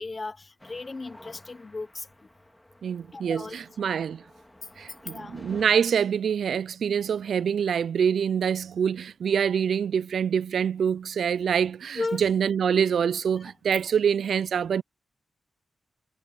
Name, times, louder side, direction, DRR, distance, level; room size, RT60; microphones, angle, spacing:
voice 1, 0.0-2.3 3.1-3.6 5.0-5.4 11.9-12.2 13.3-13.5, left 3 dB, 35° left, 0.9 m, -35 dB
sound 1, 0.6-5.8, left 1 dB, 10° left, 2.3 m, -50 dB
voice 2, 2.8-4.2 4.8-14.8, right 7 dB, 80° right, 0.3 m, -25 dB
cardioid pair, 85°, 0 cm